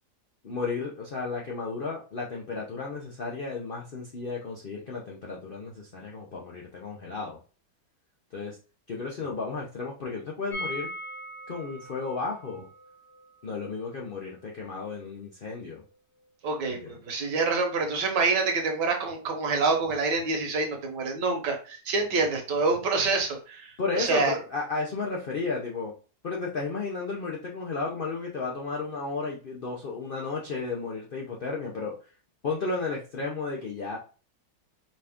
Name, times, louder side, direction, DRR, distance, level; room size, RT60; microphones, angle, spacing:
voice 1, 0.4-7.4 8.3-8.6 8.9-10.9 11.5-12.7 13.4-15.8 16.7-17.0 23.8-25.9 26.2-32.0 32.4-34.0, left 4 dB, 85° left, -2 dB, 0.4 m, -33 dB
sound 1, 10.5-16.3 16.5-16.6 16.9-17.0, equal, 50° left, 1.4 m, -42 dB
voice 2, 16.4-24.3, right 4 dB, 75° right, 3 dB, 1.5 m, -27 dB
5.1 x 2.5 x 3.5 m, 0.36 s
omnidirectional pair, 1.9 m